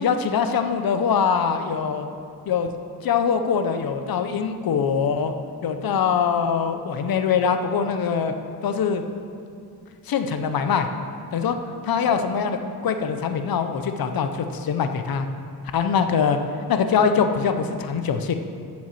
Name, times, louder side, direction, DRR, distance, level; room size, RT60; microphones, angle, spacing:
voice 1, 0.0-2.1 2.5-2.7 3.0-5.3 5.6-8.3 8.6-9.0 10.1-10.9 11.3-11.6 11.8-15.3 15.7-16.4 16.7-18.3, left 6 dB, 60° left, 7 dB, 0.6 m, -23 dB
7.5 x 7.2 x 7.5 m, 2.4 s
wide cardioid pair, 180°, 40 cm